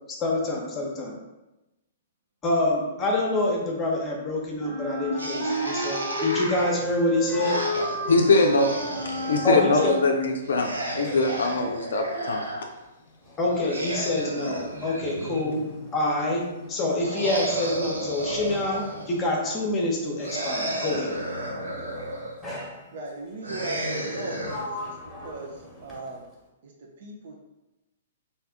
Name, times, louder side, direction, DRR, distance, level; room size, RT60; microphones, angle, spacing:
voice 1, 0.2-1.2 2.4-7.6 9.4-9.9 13.4-15.6 15.9-21.2, left 2 dB, 25° left, -2 dB, 0.9 m, -26 dB
Wind instrument woodwind instrument, 4.6-10.4, right 1 dB, 25° right, 1.3 m, -31 dB
sound 1, 5.2-9.4 10.4-12.6 13.5-15.8 17.0-19.2 20.2-22.4 23.4-24.6, right 1 dB, 80° right, 0.9 m, -33 dB
Sliding door, 6.8-10.1 10.4-20.6 21.5-21.8 22.4-23.3 23.9-26.5, left 2 dB, 5° left, 1.2 m, -42 dB
voice 2, 8.1-8.7 9.3-12.4, left 3 dB, 70° left, 2 dB, 0.5 m, -22 dB
voice 3, 22.9-26.3 26.6-27.4, right 2 dB, 55° right, 0 dB, 0.6 m, -38 dB
3.4 x 2.7 x 3.5 m, 0.99 s
figure-of-eight pair, 115°, 0 cm